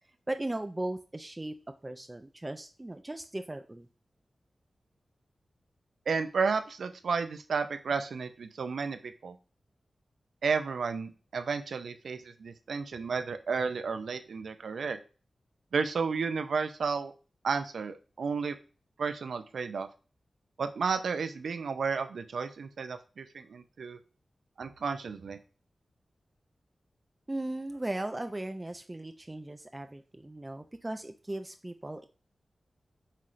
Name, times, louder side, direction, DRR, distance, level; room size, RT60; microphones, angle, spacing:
voice 1, 0.3-1.5 1.8-3.9 27.3-32.0, right 1 dB, 25° right, 7 dB, 0.4 m, -37 dB
voice 2, 6.1-9.4 10.4-15.0 15.7-17.1 17.4-18.6 19.0-19.9 20.6-24.0 24.6-25.4, right 5 dB, 85° right, 9 dB, 0.4 m, -32 dB
5.7 x 3.1 x 2.5 m, 0.35 s
cardioid pair, 55°, 0 cm